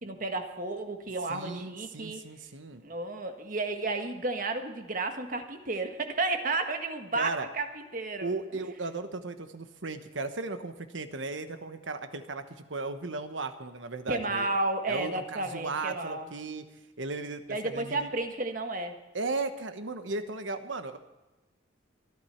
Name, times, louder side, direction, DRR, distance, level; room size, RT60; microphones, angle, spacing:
voice 1, 0.0-2.2 2.8-8.3 14.1-16.3 17.5-19.0, right 2 dB, 45° right, 6 dB, 1.5 m, -32 dB
voice 2, 1.3-2.8 7.1-7.5 8.2-14.5 14.9-16.6 17.0-18.1 19.1-21.0, right 3 dB, 80° right, 9 dB, 1.2 m, -36 dB
24.5 x 9.7 x 4.5 m, 1.1 s
head